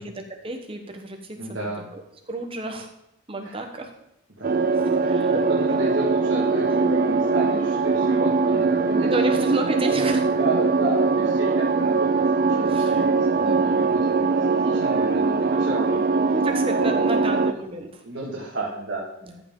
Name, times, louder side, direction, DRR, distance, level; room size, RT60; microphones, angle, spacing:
voice 1, 0.0-2.9 3.3-3.9 4.7-5.3 8.9-10.2 12.7-13.1 13.3-13.7 16.3-18.0 19.2-19.4, right 2 dB, 25° right, 3 dB, 1.1 m, -31 dB
voice 2, 1.4-1.9 3.4-3.6 4.4-4.6 4.9-9.1 9.8-10.1 10.3-14.1 14.5-16.0 16.7-17.3 18.0-19.0, right 1 dB, 60° right, -5 dB, 2.1 m, -31 dB
sound 1, 4.4-17.5, right 4 dB, 45° right, 0.4 m, -21 dB
14.0 x 5.7 x 3.8 m, 0.84 s
head